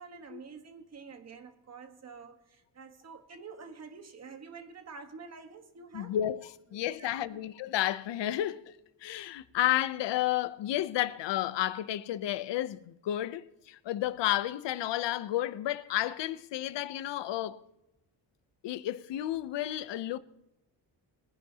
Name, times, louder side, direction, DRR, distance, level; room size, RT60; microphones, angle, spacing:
voice 1, 0.0-6.2 6.7-7.2, right 5 dB, 40° right, 1.4 m, -48 dB
voice 2, 5.9-8.7 9.0-17.6 18.6-20.2, left 13 dB, 85° left, 0.7 m, -32 dB
22.0 x 10.5 x 2.8 m
wide cardioid pair, 165°, 42 cm